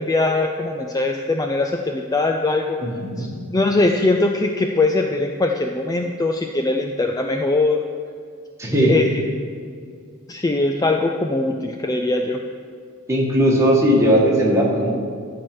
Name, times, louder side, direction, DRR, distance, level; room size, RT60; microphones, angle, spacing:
voice 1, 0.0-2.8 3.2-7.8 8.9-9.1 10.3-12.4, left 2 dB, 15° left, 3 dB, 0.4 m, -21 dB
voice 2, 2.8-3.3 8.6-8.9 13.1-14.9, equal, 15° right, -3 dB, 1.8 m, -18 dB
13.0 x 4.7 x 6.1 m, 2.2 s
head